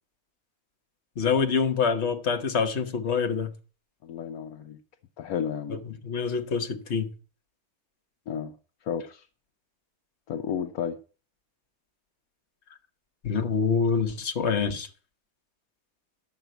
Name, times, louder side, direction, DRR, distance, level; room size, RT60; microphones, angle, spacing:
voice 1, 1.2-3.5 5.7-7.1 13.2-14.9, left 6 dB, 45° left, 1.4 m, -26 dB
voice 2, 4.0-4.8 5.2-5.8 8.3-8.5 8.8-9.3 10.3-11.0, left 8 dB, 70° left, 1.1 m, -32 dB
11.5 x 5.8 x 7.9 m
omnidirectional pair, 1.7 m